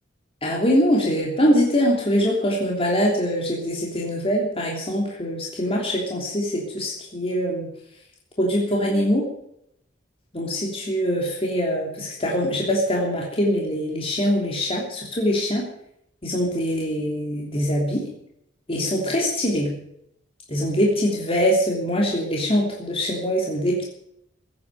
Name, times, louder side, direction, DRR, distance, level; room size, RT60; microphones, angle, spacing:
voice 1, 0.4-7.7 8.4-9.3 10.3-15.7 16.2-18.1 18.7-19.8 20.5-23.8, equal, 30° left, -2 dB, 3.1 m, -23 dB
15.5 x 9.4 x 9.3 m, 0.75 s
head